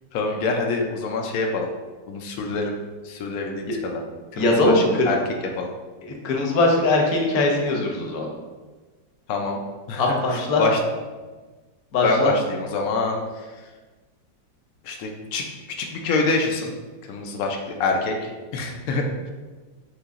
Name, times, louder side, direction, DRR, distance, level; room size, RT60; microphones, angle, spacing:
voice 1, 0.1-1.7 2.1-2.7 3.1-4.0 4.4-5.2 5.5-5.7 9.3-9.6 9.9-10.2 10.6-10.8 12.0-13.2 14.9-15.4 15.8-16.7 17.1-18.1 18.5-19.0, left 3 dB, 85° left, 1 dB, 0.7 m, -25 dB
voice 2, 4.3-5.1 6.0-8.3 10.0-10.6 11.9-12.3, left 2 dB, 60° left, 0 dB, 1.1 m, -21 dB
6.3 x 2.8 x 2.4 m, 1.3 s
omnidirectional pair, 2.1 m